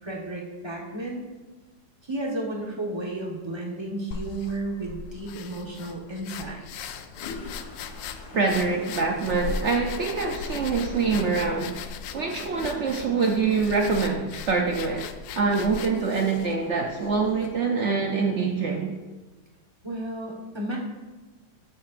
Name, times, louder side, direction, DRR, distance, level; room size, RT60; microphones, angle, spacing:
voice 1, 0.0-1.2 2.0-6.9 19.8-20.8, right 1 dB, 20° right, -2 dB, 0.9 m, -33 dB
sound 1, 4.1-17.5, left 6 dB, 80° left, 1.3 m, -38 dB
Toilet flush, 6.7-12.9, left 3 dB, 65° left, 1.5 m, -45 dB
voice 2, 8.3-18.9, right 4 dB, 70° right, 2 dB, 0.6 m, -25 dB
12.5 x 7.2 x 2.5 m, 1.2 s
omnidirectional pair, 2.0 m